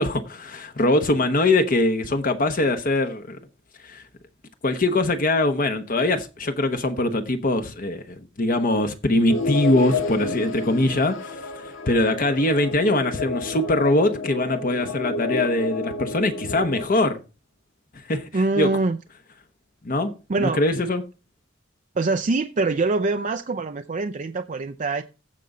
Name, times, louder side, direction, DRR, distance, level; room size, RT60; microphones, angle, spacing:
voice 1, 0.0-3.4 3.8-4.0 4.6-17.2 17.9-18.3 18.6-18.7 19.8-21.0, left 2 dB, 45° left, 1.0 m, -22 dB
sound 1, 9.3-16.8, left 3 dB, 80° left, 1.5 m, -30 dB
voice 2, 18.3-19.0 20.3-20.6 22.0-25.0, right 3 dB, 40° right, 0.5 m, -24 dB
15.0 x 5.4 x 3.7 m
head